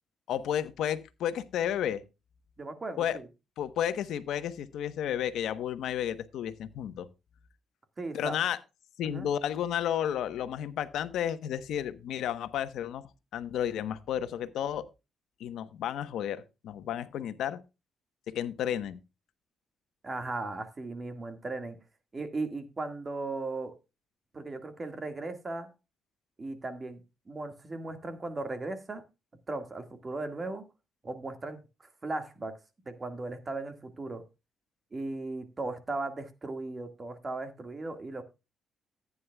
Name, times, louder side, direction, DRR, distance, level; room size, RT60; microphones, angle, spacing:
voice 1, 0.3-2.0 3.0-3.2 3.6-7.1 8.1-8.6 9.0-13.0 13.3-14.8 15.4-17.6 18.3-19.0, left 10 dB, 80° left, 12 dB, 1.1 m, -32 dB
voice 2, 2.6-3.3 8.0-8.4 9.0-9.3 20.0-21.8 22.1-23.7 24.3-25.7 26.4-27.0 27.3-29.0 29.5-30.6 31.0-31.6 32.0-32.6 32.9-34.2 34.9-38.2, right 2 dB, 25° right, 8 dB, 1.8 m, -37 dB
14.5 x 9.6 x 2.3 m, 0.27 s
cardioid pair, 115°, 0 cm